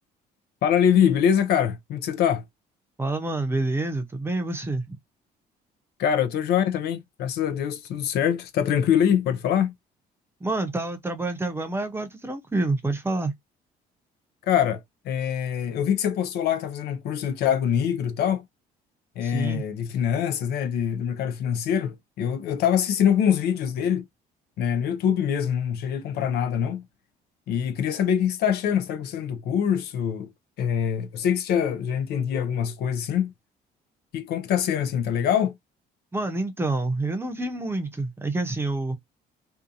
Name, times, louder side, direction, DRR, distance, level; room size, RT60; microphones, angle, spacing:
voice 1, 0.6-2.4 6.0-9.7 14.4-18.4 19.2-24.0 24.6-26.8 27.5-30.3 30.6-33.3 34.1-35.6, left 9 dB, 70° left, 0.5 m, -24 dB
voice 2, 3.0-5.0 10.4-13.3 19.2-19.6 36.1-39.0, right 2 dB, 15° right, 0.7 m, -27 dB
2.7 x 2.3 x 2.5 m
cardioid pair, 110°, 17 cm